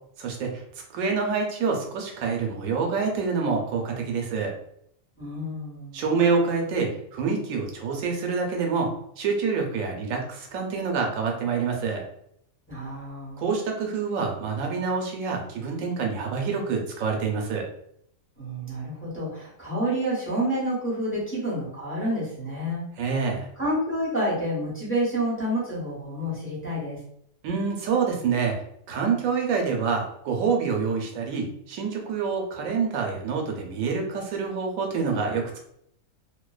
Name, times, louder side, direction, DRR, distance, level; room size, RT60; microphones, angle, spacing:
voice 1, 0.2-0.6 0.9-4.5 5.9-8.9 9.2-12.0 13.4-17.7 23.0-23.5 27.4-28.6 28.9-35.6, right 5 dB, 90° right, 1 dB, 1.0 m, -27 dB
voice 2, 5.2-6.0 12.7-13.4 18.4-22.8 23.6-27.0, equal, 10° left, -8 dB, 0.8 m, -29 dB
2.5 x 2.1 x 2.3 m, 0.72 s
omnidirectional pair, 1.4 m